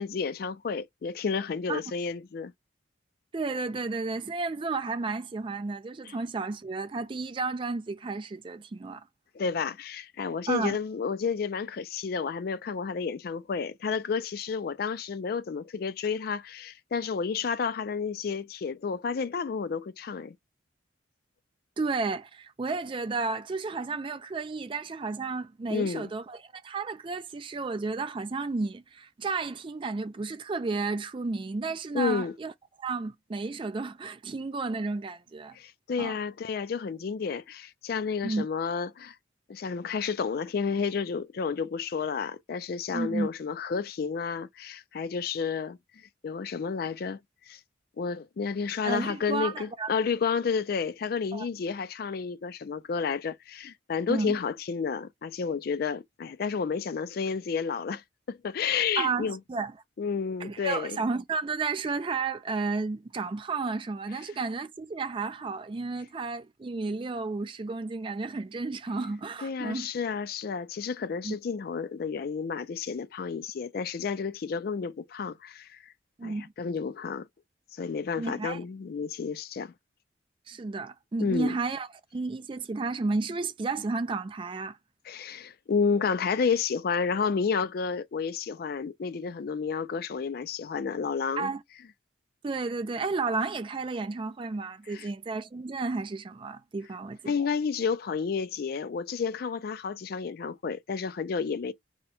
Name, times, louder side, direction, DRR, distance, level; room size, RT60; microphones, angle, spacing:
voice 1, 0.0-2.5 6.1-6.2 9.3-20.4 25.7-26.1 31.9-32.4 35.5-39.1 39.5-45.8 46.2-47.2 47.5-47.6 48.0-59.4 60.0-61.0 69.4-75.9 76.2-77.3 77.7-79.7 81.2-81.6 85.1-91.5 94.9-95.1 97.3-101.7, left 5 dB, 50° left, 0.3 m, -31 dB
voice 2, 3.3-9.0 10.5-10.8 21.8-32.5 32.8-35.6 36.0-36.2 38.2-38.5 42.9-43.3 48.8-49.9 51.3-51.5 54.1-54.4 59.0-59.7 60.4-69.9 71.2-71.3 76.2-76.5 78.2-78.6 80.5-84.8 91.4-91.6 92.4-97.5, right 3 dB, 25° right, 0.3 m, -32 dB
2.8 x 2.2 x 4.1 m
head